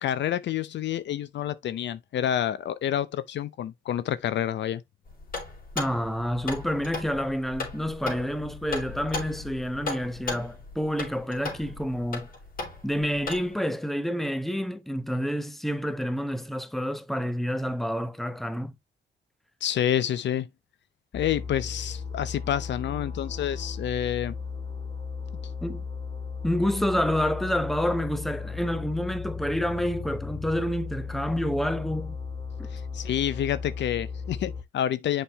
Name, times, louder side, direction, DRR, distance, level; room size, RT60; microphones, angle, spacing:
voice 1, 0.0-4.8 19.6-20.5 21.1-24.4 32.7-35.2, left 10 dB, 65° left, 0.7 m, -28 dB
sound 1, 5.1-13.5, left 3 dB, 45° left, 3.6 m, -37 dB
voice 2, 5.7-12.3 12.8-18.7 25.6-25.8 26.4-32.2 32.6-32.7, equal, ahead, 0.9 m, -28 dB
sound 2, 21.1-34.6, left 5 dB, 30° left, 0.9 m, -36 dB
7.1 x 5.4 x 3.0 m
cardioid pair, 90°, 20 cm